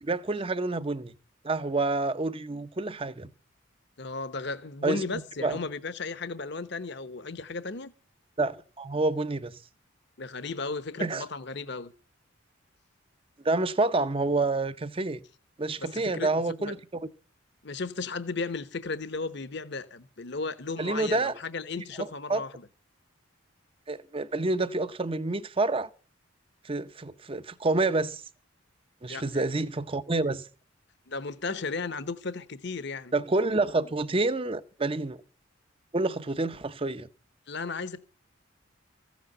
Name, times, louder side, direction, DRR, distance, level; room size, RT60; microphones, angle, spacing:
voice 1, 0.0-1.1 1.4-3.3 4.8-5.0 5.4-5.6 8.4-9.6 11.0-11.2 13.4-15.2 15.6-16.8 20.8-21.4 22.3-22.4 23.9-25.9 26.6-28.2 29.0-30.5 33.1-35.2 35.9-37.1, right 2 dB, 25° right, 0.6 m, -28 dB
voice 2, 4.0-7.9 10.2-11.9 15.8-16.3 16.6-16.7 17.6-22.7 29.1-29.4 31.1-33.1 37.5-38.0, left 4 dB, 55° left, 1.0 m, -35 dB
14.5 x 8.2 x 7.7 m
head